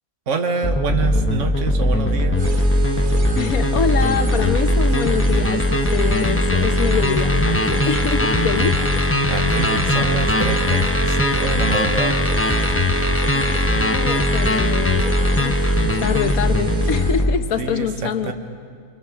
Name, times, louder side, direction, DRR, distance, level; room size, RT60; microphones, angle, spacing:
voice 1, 0.3-2.5 9.3-12.2 17.6-18.3, right 5 dB, 60° right, 1.7 m, -26 dB
sound 1, 0.6-17.4, left 1 dB, 10° left, 0.9 m, -19 dB
sound 2, 2.3-17.3, right 3 dB, 35° right, 1.5 m, -29 dB
voice 2, 3.4-8.8 13.3-18.3, left 7 dB, 90° left, 1.5 m, -25 dB
26.5 x 25.5 x 7.4 m
omnidirectional pair, 1.5 m